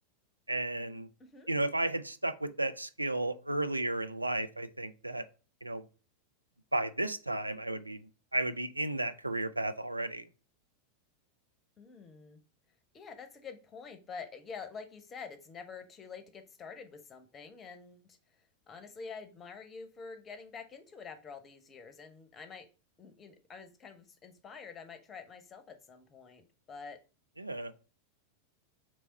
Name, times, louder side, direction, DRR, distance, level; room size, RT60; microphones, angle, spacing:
voice 1, 0.5-1.1 1.5-5.2 5.6-5.8 6.7-8.0 8.3-10.2 27.4-27.7, right 2 dB, 90° right, 0.4 m, -33 dB
voice 2, 1.2-1.5 11.8-12.4 12.9-18.2 18.7-22.7 23.0-27.0, left 5 dB, 25° left, 0.8 m, -47 dB
3.4 x 3.1 x 4.0 m
figure-of-eight pair, 90°, 0 cm